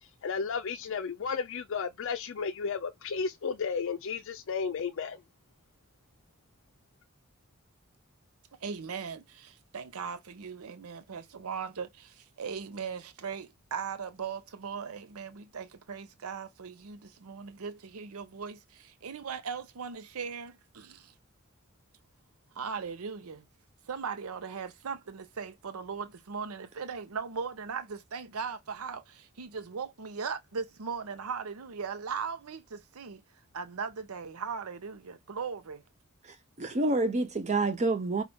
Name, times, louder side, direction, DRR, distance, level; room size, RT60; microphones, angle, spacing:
voice 1, 0.0-5.2, left 5 dB, 60° left, 0.4 m, -33 dB
voice 2, 8.6-21.1 22.5-23.4 23.9-33.2 33.5-35.8, right 6 dB, 90° right, 0.6 m, -38 dB
voice 3, 36.2-38.2, right 2 dB, 30° right, 0.6 m, -28 dB
5.3 x 2.3 x 3.4 m
head